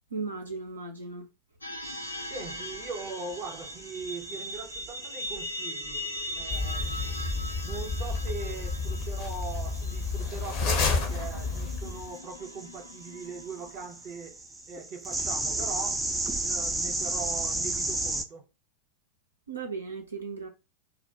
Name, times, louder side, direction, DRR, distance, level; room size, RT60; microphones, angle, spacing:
voice 1, 0.1-1.3 19.5-20.5, right 4 dB, 80° right, 0.4 m, -36 dB
sound 1, 1.6-14.1, left 1 dB, 85° left, 0.5 m, -40 dB
sound 2, 1.8-18.2, right 2 dB, 10° right, 0.4 m, -36 dB
voice 2, 2.3-6.1 6.3-7.2 7.6-14.4 14.7-16.1 16.4-18.4, right 4 dB, 40° right, 0.7 m, -40 dB
sound 3, 6.5-12.1, left 4 dB, 40° left, 0.6 m, -31 dB
2.5 x 2.1 x 2.8 m
figure-of-eight pair, 90°, 0 cm